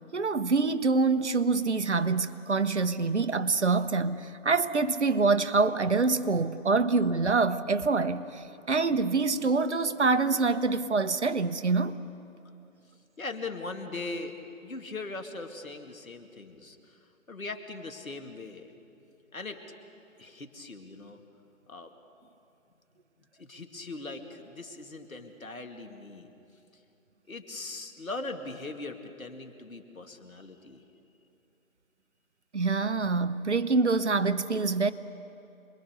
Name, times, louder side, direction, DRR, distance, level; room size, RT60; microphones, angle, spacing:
voice 1, 0.1-12.0 32.5-34.9, right 4 dB, 55° right, 1.0 m, -26 dB
voice 2, 13.2-14.4 14.6-17.0 17.3-18.7 19.3-19.6 20.2-21.2 21.7-21.9 23.4-26.3 27.3-30.8, left 3 dB, 80° left, 2.6 m, -40 dB
27.5 x 21.5 x 6.7 m
figure-of-eight pair, 165°, 41 cm